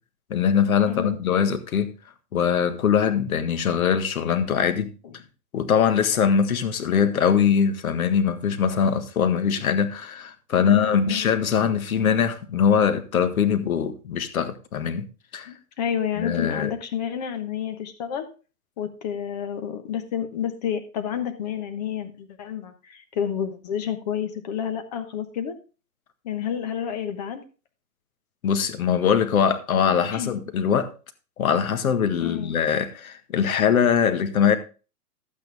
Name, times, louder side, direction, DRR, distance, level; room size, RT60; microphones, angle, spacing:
voice 1, 0.3-1.9 2.3-4.9 5.5-15.1 15.3-15.5 16.2-16.7 28.4-30.9 31.4-34.6, left 7 dB, 60° left, 1.7 m, -22 dB
voice 2, 0.9-1.2 5.0-5.1 10.5-11.2 15.5-18.3 18.8-25.6 26.2-27.4 30.1-30.3 32.2-32.6, left 9 dB, 25° left, 1.1 m, -30 dB
12.0 x 8.8 x 3.4 m
hypercardioid pair, 165°, 47 cm